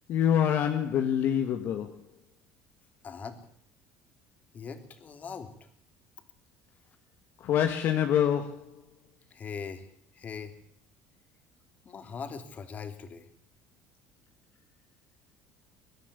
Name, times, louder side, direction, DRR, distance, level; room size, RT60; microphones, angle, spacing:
voice 1, 0.1-2.0 7.4-8.7, left 9 dB, 55° left, 1.7 m, -26 dB
voice 2, 3.0-3.4 4.5-5.7 9.3-9.9 10.1-10.5 11.8-13.3, left 6 dB, 35° left, 2.8 m, -41 dB
22.5 x 12.0 x 9.8 m
cardioid pair, 120°, 5 cm